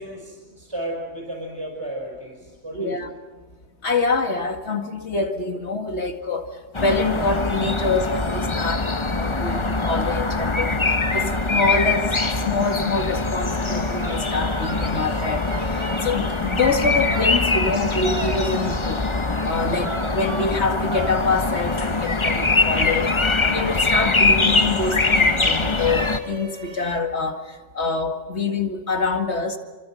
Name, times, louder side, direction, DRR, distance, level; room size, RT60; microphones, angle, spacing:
voice 1, 0.0-3.0, right 1 dB, 20° right, -2 dB, 5.9 m, -33 dB
voice 2, 2.7-3.1 3.8-8.9 9.2-12.1 12.4-19.0 19.4-23.1 23.5-29.6, left 3 dB, 65° left, 5 dB, 2.4 m, -25 dB
sound 1, 6.7-26.2, left 3 dB, 25° left, 1.0 m, -23 dB
sound 2, 13.1-27.0, right 2 dB, 60° right, 2.4 m, -37 dB
29.5 x 25.5 x 6.4 m, 1.3 s
omnidirectional pair, 1.2 m